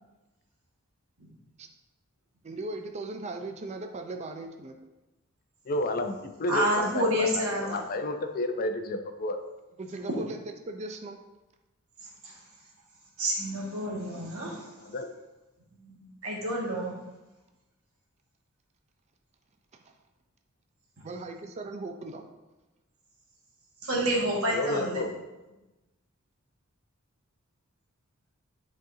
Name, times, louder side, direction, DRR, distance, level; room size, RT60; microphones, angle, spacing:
voice 1, 2.4-4.8 9.8-11.2 19.8-19.9 21.0-22.2, right 2 dB, 30° right, 5 dB, 0.4 m, -38 dB
voice 2, 5.7-9.4 14.8-15.1 24.5-25.1, left 1 dB, 45° left, 7 dB, 0.5 m, -31 dB
voice 3, 6.5-7.8 10.1-10.2 13.2-14.6 15.8-16.9 23.8-25.0, equal, 85° right, -3 dB, 1.8 m, -29 dB
10.0 x 4.0 x 2.7 m, 1.1 s
head